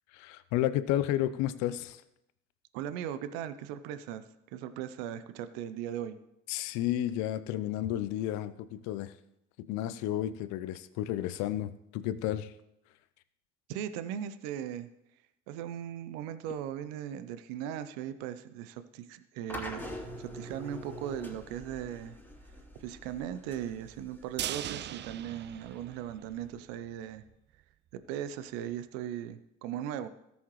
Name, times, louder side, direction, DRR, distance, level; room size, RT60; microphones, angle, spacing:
voice 1, 0.1-2.0 6.5-9.1 9.6-12.5, left 13 dB, 75° left, 14 dB, 0.7 m, -32 dB
voice 2, 2.7-4.2 4.5-6.2 13.7-14.9 15.5-22.2 22.8-27.2 27.9-30.1, right 10 dB, 80° right, 12 dB, 0.7 m, -38 dB
sound 1, 19.5-26.6, equal, 5° left, 3.3 m, -45 dB
sound 2, 24.4-26.5 26.9-27.0 27.3-27.4, right 11 dB, 40° right, 0.4 m, -39 dB
17.5 x 7.2 x 3.1 m, 0.83 s
hypercardioid pair, 45°, 29 cm